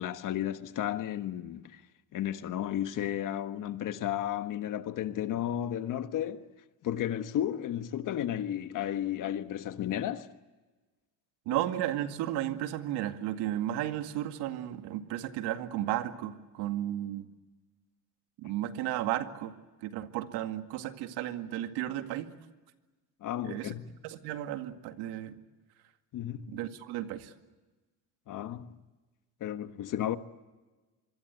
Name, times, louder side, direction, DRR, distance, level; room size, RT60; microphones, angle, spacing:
voice 1, 0.0-1.8 2.1-6.5 6.8-10.3 11.5-11.6 23.2-23.9 26.1-26.5 28.3-28.7 29.4-30.2, left 11 dB, 55° left, 1.5 m, -33 dB
voice 2, 11.5-17.3 18.4-19.5 19.8-22.3 23.4-23.7 24.0-25.4 26.5-27.3, right 13 dB, 90° right, 2.2 m, -34 dB
25.5 x 24.5 x 8.3 m
cardioid pair, 135°, 38 cm